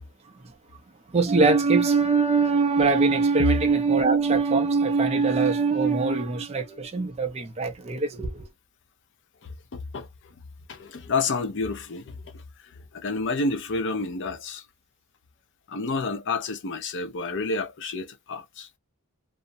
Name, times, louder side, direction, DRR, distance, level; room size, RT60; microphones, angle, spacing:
voice 1, 1.1-8.3, right 4 dB, 30° right, 0.4 m, -22 dB
voice 2, 9.4-10.4 10.7-14.6 15.7-18.7, left 3 dB, 55° left, 0.5 m, -30 dB
2.4 x 2.0 x 2.6 m
head